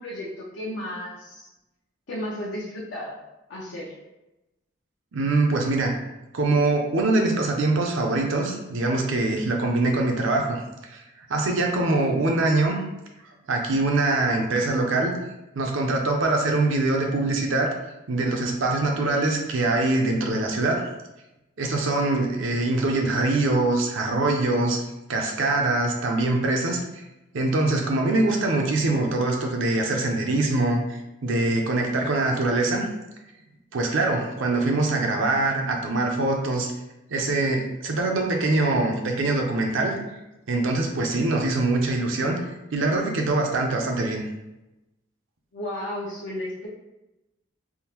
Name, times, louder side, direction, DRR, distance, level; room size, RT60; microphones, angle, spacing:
voice 1, 0.0-1.5 2.1-3.2 3.5-3.9 45.5-46.7, left 1 dB, 70° left, -5 dB, 0.6 m, -33 dB
voice 2, 5.1-5.9 6.3-11.0 11.3-12.8 13.5-15.2 15.5-17.7 18.1-20.8 21.6-24.8 25.1-26.8 27.3-30.8 31.2-32.9 33.7-36.7 37.1-40.0 40.5-42.4 42.7-44.3, right 2 dB, 75° right, 1 dB, 0.5 m, -23 dB
3.5 x 2.0 x 2.9 m, 0.96 s
head